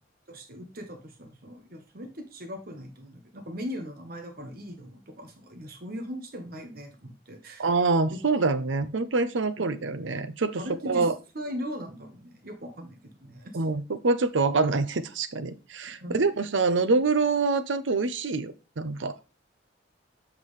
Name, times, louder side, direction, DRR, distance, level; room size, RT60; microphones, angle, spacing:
voice 1, 0.3-7.7 8.1-8.2 9.6-9.7 10.6-11.1 11.3-13.6 16.0-16.2, equal, 50° right, 4 dB, 1.1 m, -39 dB
voice 2, 7.6-11.1 13.5-19.2, right 3 dB, 90° right, 12 dB, 0.7 m, -26 dB
7.3 x 5.9 x 3.2 m, 0.31 s
head